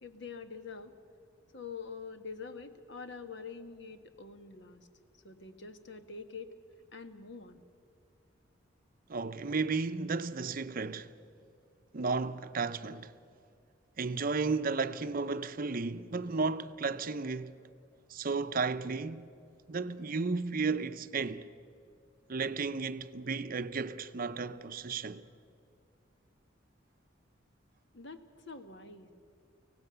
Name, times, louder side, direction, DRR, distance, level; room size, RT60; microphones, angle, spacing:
voice 1, 0.0-0.9 1.5-4.9 5.2-6.5 6.9-7.6 27.9-29.1, left 5 dB, 70° left, 1.4 m, -45 dB
voice 2, 9.1-11.1 11.9-13.1 14.0-17.5 18.1-19.3 19.7-21.5 22.3-25.3, right 4 dB, 50° right, 0.7 m, -33 dB
24.5 x 17.5 x 6.8 m
head